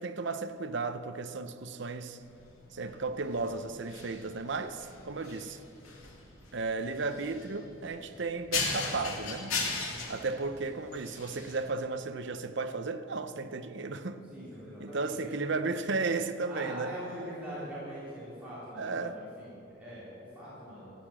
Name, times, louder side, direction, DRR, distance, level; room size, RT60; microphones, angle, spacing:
voice 1, 0.0-2.2 2.7-5.6 6.5-9.6 10.1-14.2 14.8-16.9 18.8-19.2, right 3 dB, 55° right, 0.7 m, -34 dB
sound 1, 2.2-11.6, left 4 dB, 85° left, 2.4 m, -38 dB
voice 2, 9.9-10.2 14.3-15.4 16.5-20.9, equal, 5° right, 3.8 m, -43 dB
14.5 x 8.8 x 7.5 m
head